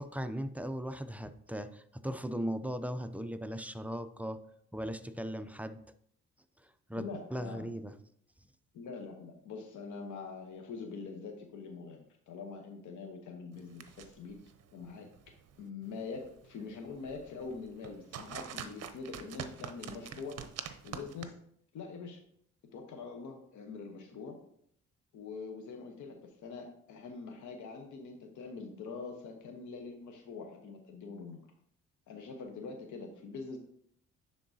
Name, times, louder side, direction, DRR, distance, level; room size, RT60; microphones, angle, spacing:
voice 1, 0.0-4.4 4.7-5.8 6.6-7.9, equal, 5° right, 0.3 m, -38 dB
voice 2, 7.0-7.7 8.7-14.4 14.7-15.1 15.6-20.4 20.8-21.4 21.7-22.2 22.7-24.4 25.1-31.5 32.1-33.6, left 4 dB, 75° left, 1.0 m, -44 dB
sound 1, 13.5-21.3, right 8 dB, 55° right, 0.6 m, -47 dB
9.8 x 3.8 x 2.7 m
cardioid pair, 90°, 30 cm